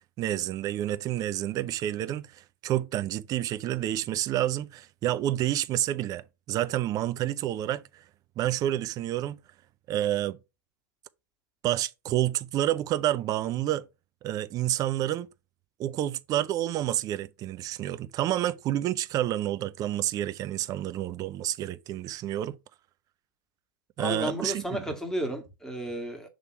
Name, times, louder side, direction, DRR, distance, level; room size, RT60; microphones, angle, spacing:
voice 1, 0.2-8.0 8.4-9.4 9.9-10.4 11.6-13.9 14.2-15.3 15.8-22.6 24.0-24.8, right 13 dB, 35° right, 0.6 m, -29 dB
voice 2, 24.0-26.3, equal, 5° left, 1.8 m, -32 dB
6.3 x 3.3 x 5.7 m
hypercardioid pair, 100°, 11 cm